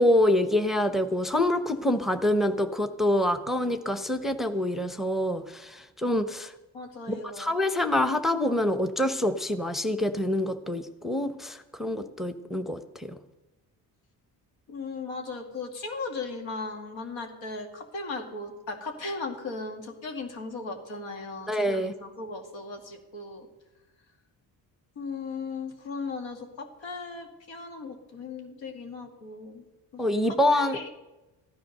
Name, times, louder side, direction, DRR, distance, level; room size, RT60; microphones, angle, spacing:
voice 1, 0.0-6.5 7.1-13.2 21.5-21.9 30.0-30.9, left 1 dB, ahead, 9 dB, 0.9 m, -26 dB
voice 2, 6.7-7.6 14.7-23.5 25.0-29.6 29.9-30.9, left 3 dB, 75° left, 4 dB, 2.4 m, -37 dB
14.5 x 10.5 x 6.6 m, 1.1 s
supercardioid pair, 60°, 46 cm